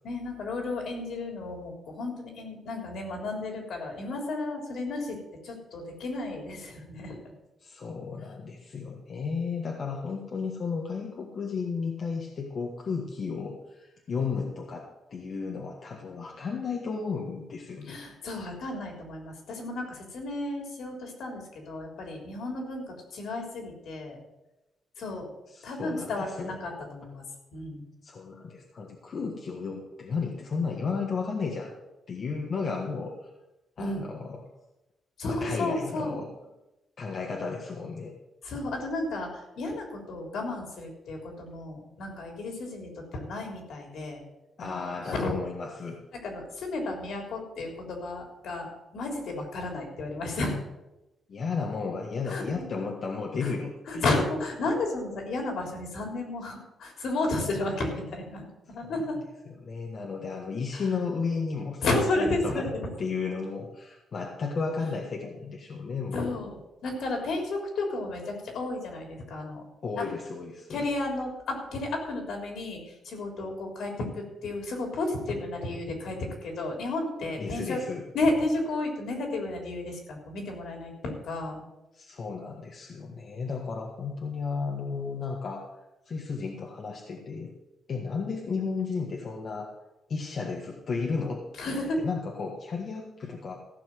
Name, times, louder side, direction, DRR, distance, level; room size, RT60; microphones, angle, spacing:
voice 1, 0.0-5.2 5.4-7.2 17.9-24.2 25.0-25.3 25.6-27.2 27.5-27.8 33.8-34.0 35.2-36.2 38.4-44.2 44.6-44.8 45.1-45.3 46.2-50.6 52.3-52.6 53.4-53.5 53.9-59.2 60.7-60.8 61.8-62.9 66.1-69.6 70.0-70.1 70.7-77.8 78.1-81.6 91.6-92.0, left 2 dB, 70° left, 2 dB, 3.4 m, -32 dB
voice 2, 7.6-18.0 25.5-26.5 28.0-31.7 32.1-33.3 33.8-34.4 35.2-36.3 37.0-38.1 44.6-46.0 51.3-54.1 58.8-58.9 59.6-62.6 63.0-66.3 69.8-70.8 77.4-78.0 81.9-85.7 86.1-87.5 87.9-89.7 90.1-93.5, left 5 dB, 45° left, 0 dB, 1.5 m, -33 dB
15.0 x 5.9 x 7.7 m, 0.97 s
cardioid pair, 130°, 0 cm